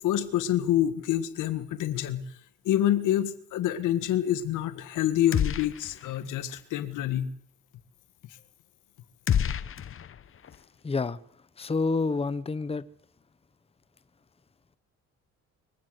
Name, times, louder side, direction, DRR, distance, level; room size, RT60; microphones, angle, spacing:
voice 1, 0.0-2.2 2.7-7.3, left 12 dB, 90° left, 1.8 m, -27 dB
sound 1, 5.3-6.2 6.5-6.6 9.3-10.6, left 9 dB, 45° left, 0.9 m, -29 dB
voice 2, 10.6-11.2 11.6-12.8, left 4 dB, 20° left, 0.8 m, -29 dB
24.0 x 15.5 x 8.0 m
cardioid pair, 90°, 30 cm